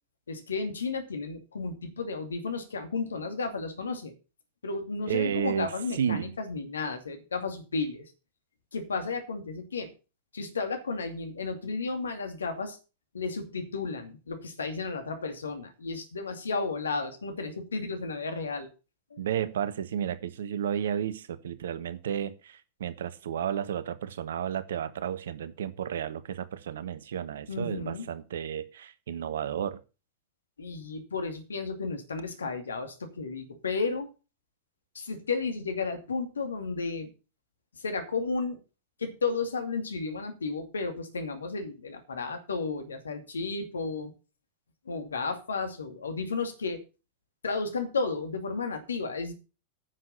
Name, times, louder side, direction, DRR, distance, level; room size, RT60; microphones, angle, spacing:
voice 1, 0.3-4.1 4.6-8.1 8.7-9.9 10.3-12.8 13.1-18.7 19.1-19.3 27.5-28.1 30.6-34.1 34.9-37.1 37.8-38.6 39.0-44.1 44.9-46.8 47.4-49.3, left 4 dB, 70° left, 7 dB, 2.5 m, -33 dB
voice 2, 5.1-6.3 19.2-29.8, right 9 dB, 60° right, 15 dB, 1.1 m, -32 dB
9.8 x 6.8 x 7.3 m, 0.32 s
figure-of-eight pair, 90°, 0 cm